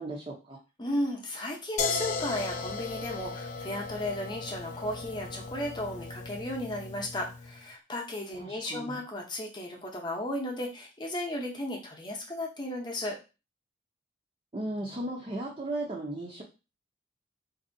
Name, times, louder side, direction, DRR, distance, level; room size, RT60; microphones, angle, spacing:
voice 1, 0.0-0.6 8.4-9.0 14.5-16.4, right 1 dB, 30° right, -2 dB, 0.6 m, -36 dB
voice 2, 0.8-13.2, left 1 dB, 25° left, 0 dB, 0.7 m, -35 dB
sound 1, 1.8-7.6, left 4 dB, 40° left, 0.3 m, -36 dB
4.0 x 2.6 x 2.6 m, 0.30 s
head